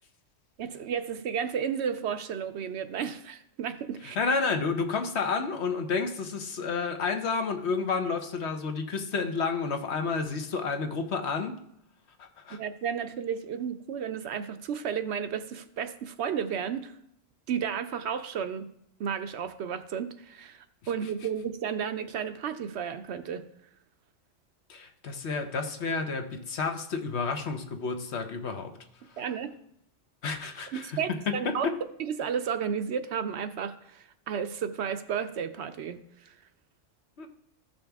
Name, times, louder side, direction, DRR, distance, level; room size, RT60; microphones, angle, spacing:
voice 1, 0.6-4.2 12.5-16.9 17.5-18.7 19.0-23.5 29.2-29.5 30.7-31.7 32.0-36.3, right 7 dB, 70° right, 10 dB, 0.8 m, -33 dB
voice 2, 4.2-11.6 12.2-12.6 24.7-28.8 29.1-29.2 30.2-31.0 31.3-31.7 37.2-37.3, left 4 dB, 60° left, 6 dB, 1.1 m, -30 dB
14.5 x 5.3 x 3.4 m, 0.75 s
omnidirectional pair, 1.3 m